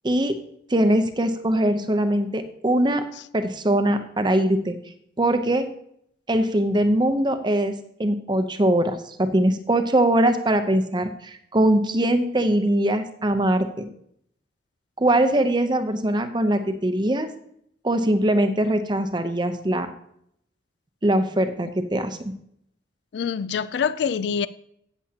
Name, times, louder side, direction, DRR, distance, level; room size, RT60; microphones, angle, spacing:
voice 1, 0.7-3.0 3.3-4.8 5.2-5.7 6.3-7.7 8.0-13.9 15.0-17.3 17.8-19.9 21.0-22.2, right 1 dB, 25° right, 0.7 m, -22 dB
voice 2, 23.1-24.5, left 6 dB, 60° left, 0.3 m, -25 dB
17.0 x 7.1 x 2.9 m
head